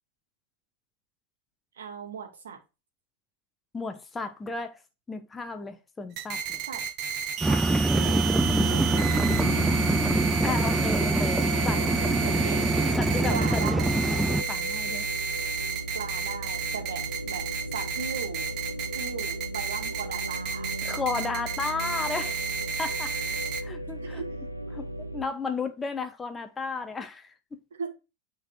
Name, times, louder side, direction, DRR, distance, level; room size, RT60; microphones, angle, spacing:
voice 1, 1.8-2.6 6.7-6.8 7.5-9.9 12.2-12.7 13.3-13.9 15.9-17.5 17.7-18.5 18.9-20.7 23.5-23.6 24.0-24.3 27.8-27.9, right 6 dB, 65° right, 2.0 m, -38 dB
voice 2, 3.7-4.8 5.1-6.6 10.4-11.8 13.0-13.6 14.5-15.1 20.8-22.5 22.8-24.2 24.7-24.9 25.1-27.3, left 4 dB, 15° left, 0.9 m, -34 dB
sound 1, 6.2-23.6, right 6 dB, 40° right, 1.0 m, -32 dB
sound 2, 7.4-14.4, right 2 dB, 5° right, 0.3 m, -24 dB
sound 3, 8.4-25.2, right 1 dB, 85° left, 0.7 m, -36 dB
9.2 x 4.1 x 4.7 m
figure-of-eight pair, 90°, 0 cm